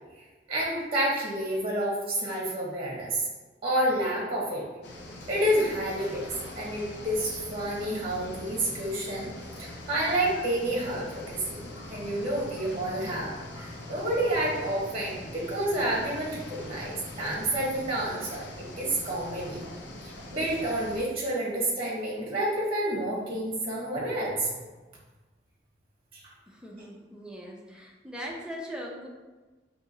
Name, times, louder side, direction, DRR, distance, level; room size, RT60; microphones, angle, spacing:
voice 1, 0.5-3.2 3.6-4.6 5.3-9.3 9.6-18.4 18.8-19.6 20.3-24.5 26.2-26.3, right 1 dB, 35° right, -4 dB, 0.9 m, -29 dB
sound 1, 4.8-21.0, left 1 dB, 65° left, 0.6 m, -42 dB
voice 2, 26.5-29.1, equal, 5° right, -2 dB, 0.6 m, -40 dB
5.4 x 2.7 x 2.7 m, 1.2 s
head